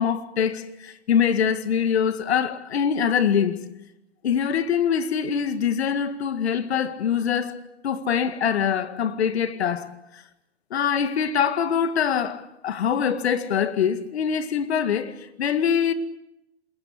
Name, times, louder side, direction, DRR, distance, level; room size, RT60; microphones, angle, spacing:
voice 1, 0.0-3.6 4.2-7.6 7.8-9.9 10.7-15.9, left 7 dB, 75° left, 2.1 m, -24 dB
27.0 x 21.0 x 8.4 m
hypercardioid pair, 110°, 33 cm